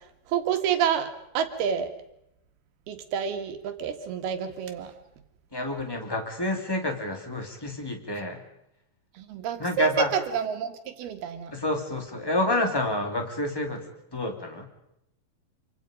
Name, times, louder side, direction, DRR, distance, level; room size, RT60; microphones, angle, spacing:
voice 1, 0.3-1.9 2.9-4.9 9.2-11.6, right 8 dB, 80° right, 7 dB, 3.7 m, -29 dB
voice 2, 5.5-8.4 9.6-10.1 11.5-13.8 14.1-14.7, left 1 dB, 5° left, 3 dB, 2.4 m, -28 dB
27.0 x 25.0 x 5.3 m, 0.81 s
omnidirectional pair, 4.4 m